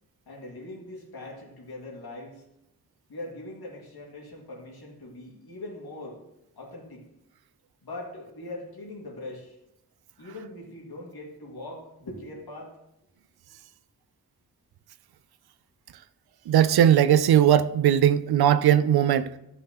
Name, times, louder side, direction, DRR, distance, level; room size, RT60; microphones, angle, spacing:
voice 1, 0.3-2.4 3.1-6.2 6.6-7.1 7.8-9.6 10.2-12.8, left 2 dB, 75° left, 2.2 m, -41 dB
voice 2, 16.5-19.3, right 10 dB, 85° right, 0.5 m, -19 dB
13.0 x 5.6 x 2.9 m
wide cardioid pair, 85°, 37 cm